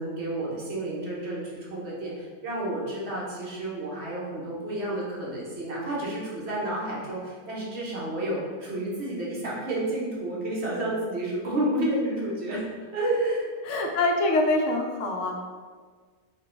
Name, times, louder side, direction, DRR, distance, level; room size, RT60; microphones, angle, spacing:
voice 1, 0.0-12.6 12.9-13.5, right 1 dB, 65° right, -5 dB, 1.2 m, -30 dB
voice 2, 13.6-15.4, left 2 dB, 90° left, 2 dB, 0.9 m, -25 dB
3.9 x 2.2 x 3.8 m, 1.5 s
omnidirectional pair, 1.2 m